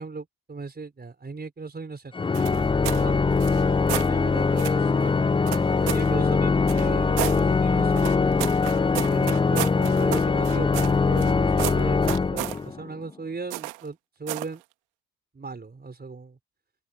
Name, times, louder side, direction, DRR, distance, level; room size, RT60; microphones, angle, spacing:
voice 1, 0.0-2.1 2.8-3.8 4.1-5.3 5.8-8.3 9.1-14.6 15.3-16.4, right 4 dB, 30° right, 4.6 m, -37 dB
Organ, 2.1-12.9, left 4 dB, 15° left, 0.5 m, -22 dB
sound 1, 2.3-3.0 3.4-4.1 4.6-4.8 5.5-6.1 6.7-7.4 7.9-11.3 11.6-12.6 13.5-13.9 14.3-14.5, right 24 dB, 85° right, 2.0 m, -32 dB
open air
hypercardioid pair, 55°, 34 cm